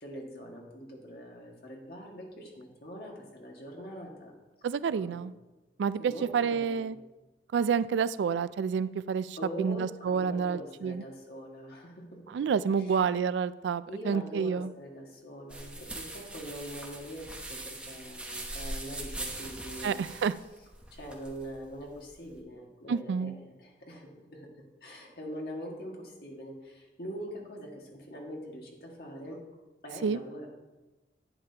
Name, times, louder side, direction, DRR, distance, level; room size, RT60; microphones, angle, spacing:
voice 1, 0.0-4.3 4.9-5.3 6.0-6.9 9.4-12.2 12.8-13.0 13.9-20.0 20.9-23.3 23.6-24.5 24.8-29.4 29.8-30.5, equal, 60° left, -1 dB, 1.9 m, -43 dB
voice 2, 4.6-5.3 5.8-7.0 7.5-11.0 12.3-14.7 19.8-20.3 22.9-23.3 30.0-30.2, right 6 dB, 85° right, 16 dB, 0.3 m, -29 dB
sound 1, 15.5-22.4, right 1 dB, 5° right, 0.9 m, -41 dB
11.0 x 8.8 x 2.9 m, 1.1 s
head